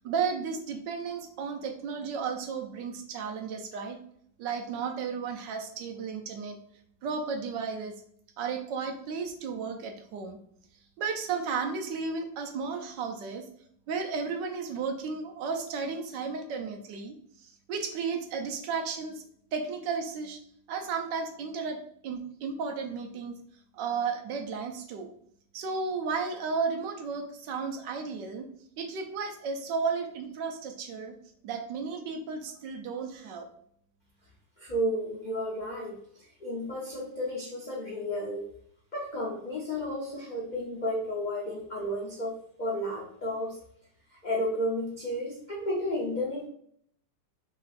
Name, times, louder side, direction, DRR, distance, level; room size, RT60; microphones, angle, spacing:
voice 1, 0.0-4.0 4.4-6.6 7.0-7.9 8.4-10.4 11.0-13.4 13.9-17.1 17.4-19.2 19.5-20.4 20.7-23.4 23.7-25.1 25.5-28.4 28.8-31.1 31.4-33.5, right 5 dB, 75° right, 4 dB, 1.3 m, -33 dB
voice 2, 34.6-38.5 38.9-43.6 44.1-46.5, equal, 45° left, -4 dB, 0.6 m, -32 dB
5.5 x 3.0 x 2.5 m, 0.65 s
omnidirectional pair, 2.0 m